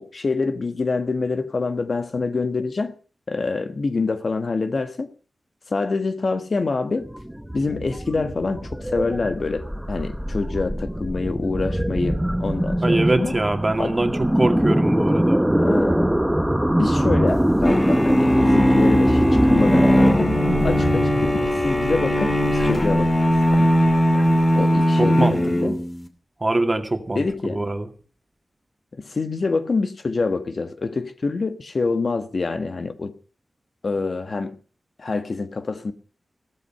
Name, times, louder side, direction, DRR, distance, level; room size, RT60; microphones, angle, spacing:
voice 1, 0.0-2.9 3.3-5.1 5.7-7.1 7.5-13.3 13.8-13.9 15.6-16.1 16.7-20.3 20.6-23.2 23.5-23.7 24.6-25.8 27.1-27.7 29.0-33.1 33.8-34.5 35.0-35.9, left 3 dB, 55° left, 10 dB, 1.3 m, -26 dB
sound 1, 7.0-24.8, equal, 5° right, 1.0 m, -23 dB
voice 2, 12.8-15.4 25.0-25.8 26.4-27.9, right 2 dB, 25° right, 6 dB, 2.2 m, -23 dB
sound 2, 17.6-26.0, equal, 25° left, 2.6 m, -19 dB
16.0 x 13.5 x 5.6 m, 0.39 s
wide cardioid pair, 90°, 0 cm